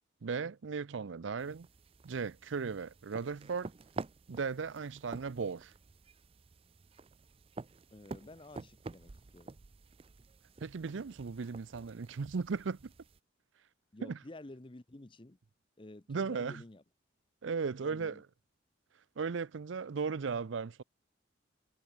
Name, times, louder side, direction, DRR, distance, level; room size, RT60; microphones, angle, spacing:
voice 1, 0.2-1.7 2.0-3.7 4.3-5.7 10.6-12.9 14.0-14.2 16.1-16.6 17.4-18.2 19.2-20.8, right 5 dB, 85° right, 0.5 m, -36 dB
sound 1, 1.4-13.2, right 3 dB, 30° right, 0.4 m, -49 dB
voice 2, 7.9-9.6 13.9-15.4 15.8-16.8 17.6-18.2, left 2 dB, 25° left, 0.8 m, -51 dB
head